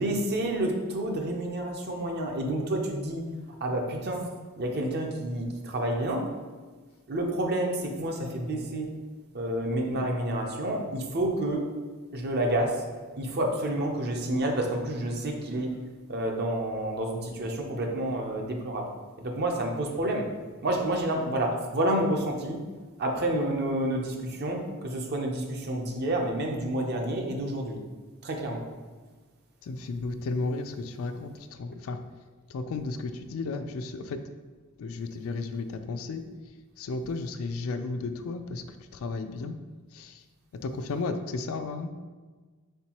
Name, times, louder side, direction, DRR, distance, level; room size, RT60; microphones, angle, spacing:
voice 1, 0.0-3.2 3.6-4.3 4.6-6.3 7.1-8.9 9.3-11.7 12.1-12.9 13.2-15.7 16.1-18.9 19.2-20.3 20.6-22.6 23.0-27.8 28.2-28.7, right 1 dB, 50° right, 2 dB, 0.6 m, -29 dB
voice 2, 29.7-31.3 31.6-32.0 32.5-34.2 34.8-36.2 36.8-38.6 39.0-39.6 40.0-40.1 40.6-41.9, left 3 dB, 70° left, 9 dB, 0.3 m, -33 dB
4.4 x 3.7 x 2.9 m, 1.4 s
head